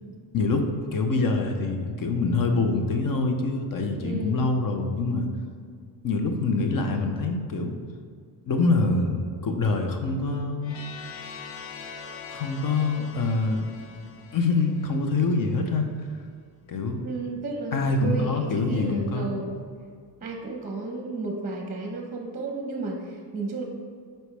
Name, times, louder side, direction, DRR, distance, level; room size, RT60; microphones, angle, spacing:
voice 1, 0.3-5.3 6.0-7.8 8.5-10.8 12.3-13.7 14.3-15.9 16.7-17.0 17.7-19.4, left 3 dB, 50° left, 5 dB, 0.8 m, -25 dB
voice 2, 4.0-4.5 17.0-19.6 20.2-23.6, right 2 dB, 20° right, 1 dB, 0.9 m, -33 dB
sound 1, 10.6-15.5, left 5 dB, 85° left, 0.8 m, -42 dB
7.9 x 4.5 x 3.4 m, 2.1 s
cardioid pair, 105°, 43 cm